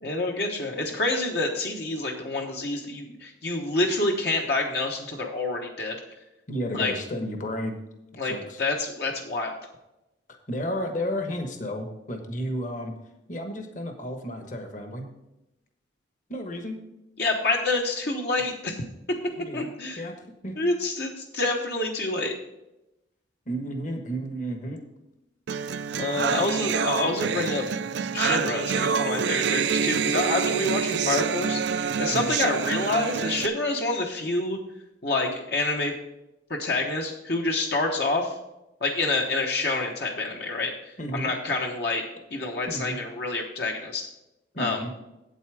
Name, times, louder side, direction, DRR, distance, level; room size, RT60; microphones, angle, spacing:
voice 1, 0.0-6.0 6.7-6.9 8.2-8.3 8.6-9.6 17.2-18.8 19.5-20.0 20.6-22.3 26.0-27.6 28.1-34.6 35.0-35.9 36.5-38.3 38.8-42.0 42.3-44.1 44.6-44.8, left 2 dB, 60° left, 1 dB, 1.2 m, -27 dB
voice 2, 6.5-7.8 8.2-8.6 10.5-12.9 13.3-15.1 16.3-16.8 19.3-19.7 20.0-20.2 20.4-20.6 23.5-24.8 32.1-32.3 41.0-41.3 42.7-43.0 44.5-44.9, equal, 45° left, 5 dB, 1.3 m, -32 dB
sound 1, 25.5-33.5, right 6 dB, 75° right, 0.4 m, -27 dB
8.4 x 8.2 x 4.9 m, 0.92 s
head